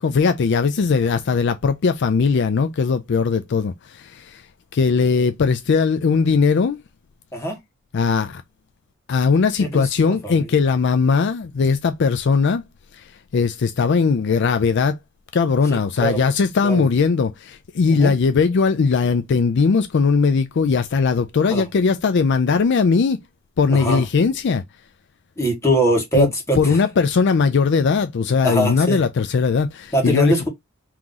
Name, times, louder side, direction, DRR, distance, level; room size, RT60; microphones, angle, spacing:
voice 1, 0.0-4.4 4.7-6.8 7.9-8.4 9.1-12.6 12.9-13.0 13.3-15.0 15.3-23.2 23.6-24.6 26.1-26.3 26.6-30.3, left 5 dB, 55° left, 0.4 m, -19 dB
voice 2, 9.6-10.5 15.7-16.2 16.6-16.9 17.8-18.1 21.5-21.6 23.7-24.0 25.4-26.8 28.4-29.0 29.9-30.5, right 1 dB, 15° left, 1.5 m, -22 dB
3.6 x 3.0 x 3.8 m
head